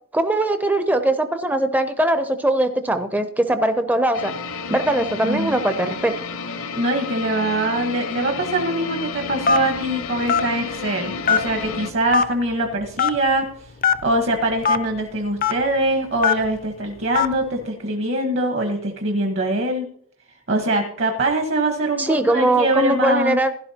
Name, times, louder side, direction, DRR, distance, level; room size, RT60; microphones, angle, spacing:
voice 1, 0.1-4.3 4.7-6.1 22.0-23.5, right 1 dB, 10° right, 8 dB, 0.5 m, -20 dB
sound 1, 4.1-11.9, left 5 dB, 70° left, 0.8 m, -31 dB
voice 2, 6.7-13.4 14.0-19.9 20.5-23.4, right 1 dB, 55° right, 4 dB, 1.1 m, -23 dB
Telephone, 9.5-9.8 10.3-10.5 11.3-11.7 12.1-12.3 13.0-13.2 13.8-14.0 14.6-14.8 15.4-15.5 16.2-16.5 17.2-17.3, left 6 dB, 40° left, 0.5 m, -18 dB
16.0 x 11.0 x 2.8 m, 0.63 s
head